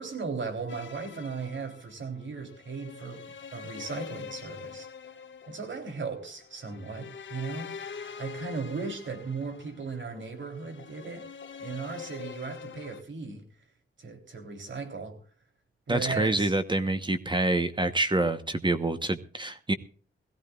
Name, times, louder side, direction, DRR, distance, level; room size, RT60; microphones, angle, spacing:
voice 1, 0.0-4.9 5.5-11.3 11.6-13.5 14.0-15.2 15.9-16.5, right 4 dB, 60° right, 3.6 m, -37 dB
sound 1, 0.7-13.0, left 6 dB, 65° left, 1.5 m, -44 dB
voice 2, 15.9-19.7, right 2 dB, 20° right, 1.0 m, -27 dB
21.5 x 16.0 x 2.4 m
wide cardioid pair, 105°, 21 cm